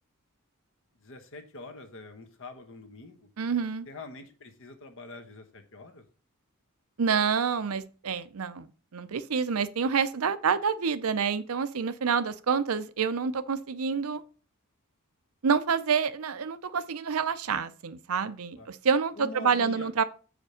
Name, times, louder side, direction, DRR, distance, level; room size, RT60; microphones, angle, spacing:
voice 1, 1.0-3.3 3.9-6.0 18.5-18.7 19.2-20.0, left 3 dB, 65° left, 1.2 m, -45 dB
voice 2, 3.4-3.9 7.0-14.2 15.4-20.0, right 6 dB, 75° right, 0.6 m, -28 dB
6.7 x 5.0 x 5.0 m
head